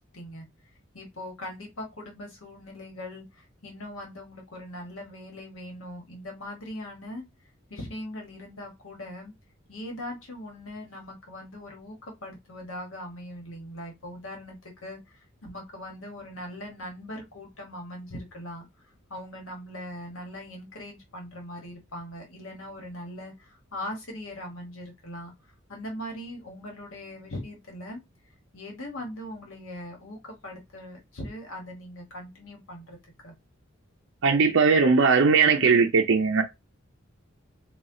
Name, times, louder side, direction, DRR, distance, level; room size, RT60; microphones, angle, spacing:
voice 1, 0.1-0.5 0.9-7.2 7.7-9.3 9.7-18.7 19.1-25.3 25.7-28.0 28.5-33.0 33.2-33.3, left 1 dB, 75° left, 1.4 m, -40 dB
voice 2, 34.2-36.4, right 5 dB, 65° right, 0.5 m, -19 dB
4.2 x 2.3 x 3.7 m
head